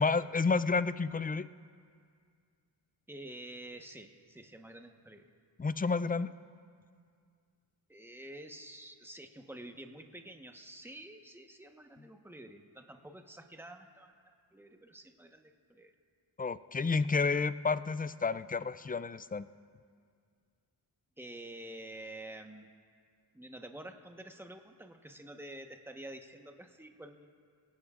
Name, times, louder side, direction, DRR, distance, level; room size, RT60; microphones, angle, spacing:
voice 1, 0.0-1.5 5.6-6.3 16.4-19.5, left 4 dB, 20° left, 14 dB, 0.4 m, -30 dB
voice 2, 3.1-5.3 7.9-14.1 14.5-15.9 21.2-22.7 23.3-27.3, right 1 dB, 5° right, 5 dB, 1.2 m, -48 dB
27.0 x 17.5 x 2.5 m, 2.1 s
cardioid pair, 70°, 46 cm